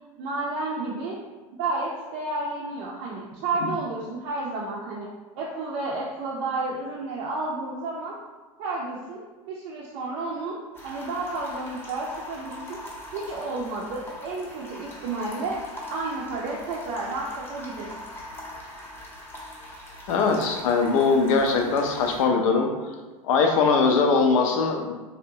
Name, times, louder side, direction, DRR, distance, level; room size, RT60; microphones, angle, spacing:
voice 1, 0.2-1.2 1.6-5.1 5.4-8.1 8.6-10.5 10.8-12.8 13.1-15.6 15.9-17.9, right 3 dB, 60° right, -4 dB, 0.5 m, -31 dB
sound 1, 10.7-22.2, left 1 dB, 10° left, 0.6 m, -41 dB
voice 2, 20.1-22.7 23.2-24.9, left 4 dB, 70° left, 3 dB, 0.5 m, -21 dB
2.6 x 2.1 x 2.6 m, 1.3 s
hypercardioid pair, 95°, 18 cm